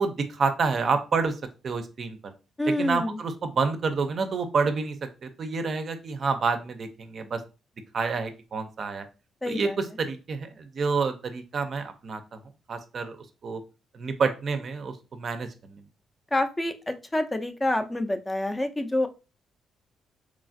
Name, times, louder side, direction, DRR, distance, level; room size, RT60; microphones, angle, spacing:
voice 1, 0.0-1.3 1.6-2.2 2.8-5.0 5.2-7.4 7.9-9.1 9.5-12.4 12.7-13.2 13.4-13.6 13.9-15.8, right 4 dB, 50° right, 8 dB, 0.4 m, -28 dB
voice 2, 2.6-3.2 9.4-9.8 16.3-19.1, left 1 dB, 15° left, 7 dB, 0.4 m, -27 dB
3.1 x 2.4 x 2.5 m, 0.31 s
cardioid pair, 90°, 0 cm